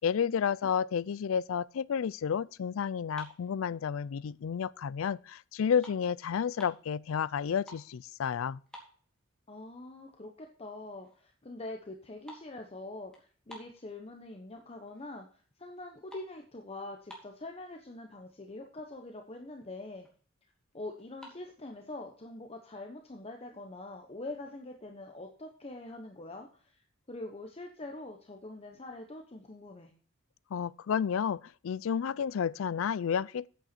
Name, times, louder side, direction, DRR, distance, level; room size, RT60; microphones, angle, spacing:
voice 1, 0.0-8.6 30.5-33.5, left 7 dB, 70° left, 0.4 m, -31 dB
sound 1, 3.1-4.4 4.9-5.1 5.4-6.9 7.4-8.0 8.3-8.4 8.7-9.6 10.0-10.1 10.6-10.7 11.0-11.3 11.6-14.4 14.9-15.3 15.6-17.6 18.3-18.4 18.6-18.8 19.2-19.3 19.5-20.2 21.0-21.4, equal, 5° left, 2.7 m, -52 dB
voice 2, 9.5-20.1 20.7-29.9, left 2 dB, 30° left, 0.9 m, -44 dB
8.7 x 8.0 x 4.3 m
head